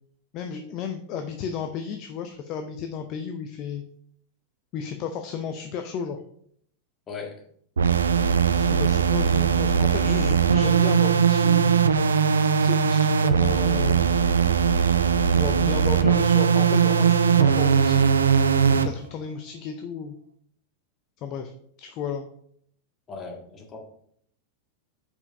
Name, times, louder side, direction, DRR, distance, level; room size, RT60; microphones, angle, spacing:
voice 1, 0.3-3.8 4.7-6.2 8.6-11.8 12.6-14.2 15.3-18.0 18.7-20.1 21.2-21.5 21.8-22.3, left 7 dB, 40° left, 6 dB, 0.6 m, -33 dB
voice 2, 7.1-7.4 23.1-23.8, left 4 dB, 25° left, 0 dB, 1.7 m, -37 dB
sound 1, 7.8-18.9, right 7 dB, 70° right, 0.4 m, -20 dB
5.5 x 4.6 x 5.1 m, 0.66 s
figure-of-eight pair, 90°, 0 cm